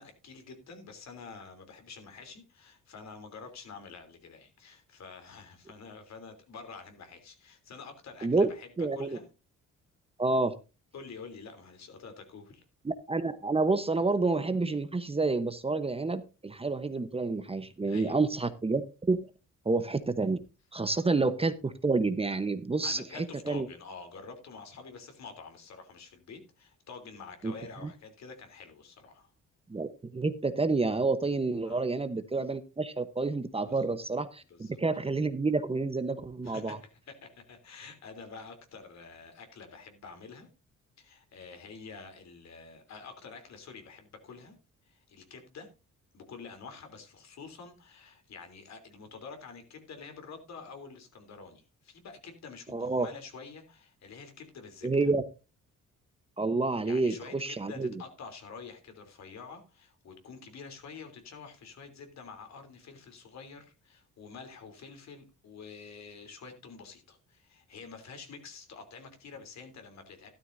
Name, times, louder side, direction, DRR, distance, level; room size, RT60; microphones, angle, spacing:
voice 1, 0.0-8.7 8.9-9.2 10.9-12.6 17.9-18.2 22.8-29.3 31.6-31.8 33.7-33.9 34.5-34.8 36.4-36.9 37.2-40.5 41.0-44.5 44.9-45.7 46.1-55.1 56.8-70.3, left 5 dB, 60° left, 6 dB, 3.3 m, -48 dB
voice 2, 8.8-9.2 10.2-10.5 12.8-19.3 19.6-20.4 20.7-23.7 27.4-27.5 27.8-27.9 29.7-36.8 52.7-53.1 54.8-55.2 56.4-57.9, right 3 dB, 20° right, 11 dB, 0.9 m, -29 dB
12.5 x 12.5 x 2.6 m, 0.30 s
cardioid pair, 90°, 30 cm